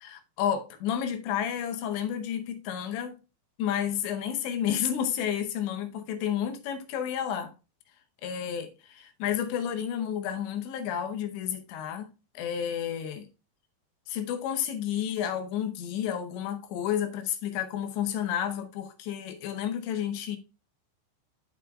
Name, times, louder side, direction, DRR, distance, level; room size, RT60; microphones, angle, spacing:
voice 1, 0.0-3.1 3.6-7.5 8.2-13.3 14.1-20.4, left 9 dB, 75° left, 3.1 m, -31 dB
13.0 x 4.9 x 2.3 m
omnidirectional pair, 5.4 m